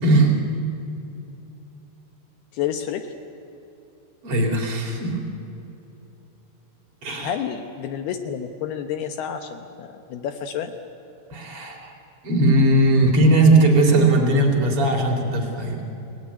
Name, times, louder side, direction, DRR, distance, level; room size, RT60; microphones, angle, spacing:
voice 1, 0.0-0.4 4.2-5.2 7.0-7.4 11.3-11.9 12.2-15.8, right 2 dB, 30° right, 1 dB, 3.7 m, -18 dB
voice 2, 2.5-3.0 7.2-10.7, left 9 dB, 75° left, 7 dB, 2.4 m, -29 dB
29.5 x 18.0 x 9.7 m, 2.9 s
omnidirectional pair, 5.7 m